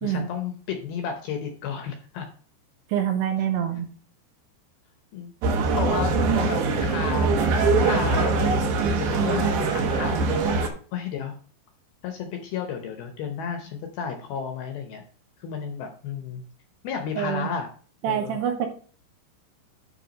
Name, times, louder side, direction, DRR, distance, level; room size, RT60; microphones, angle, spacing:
voice 1, 0.0-2.3 5.1-11.3 12.0-15.0 15.4-16.4 16.8-17.7 18.1-18.4, left 7 dB, 75° left, 4 dB, 2.4 m, -33 dB
voice 2, 2.9-3.9 6.4-6.6 17.2-17.5 18.0-18.7, right 9 dB, 75° right, 4 dB, 3.0 m, -26 dB
sound 1, 5.4-10.7, right 4 dB, 90° right, 1.7 m, -22 dB
9.9 x 3.5 x 5.2 m, 0.41 s
omnidirectional pair, 5.2 m